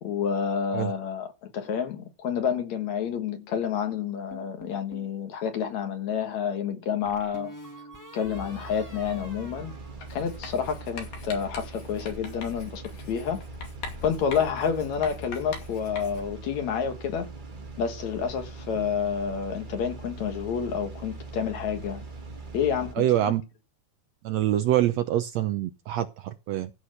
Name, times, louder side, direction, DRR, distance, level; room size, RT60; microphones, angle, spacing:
voice 1, 0.0-7.5 8.1-9.7 10.1-13.4 14.0-17.3 17.8-22.0 22.5-23.1, left 7 dB, 65° left, 2.6 m, -29 dB
sound 1, 4.3-5.1 7.0-10.7, equal, 20° left, 0.5 m, -46 dB
sound 2, 8.3-22.9, right 3 dB, 55° right, 0.5 m, -42 dB
Writing, 10.0-16.4, left 5 dB, 90° left, 4.1 m, -42 dB
voice 2, 23.0-23.4 24.2-26.7, right 12 dB, 75° right, 1.6 m, -25 dB
14.5 x 6.2 x 6.5 m
omnidirectional pair, 3.7 m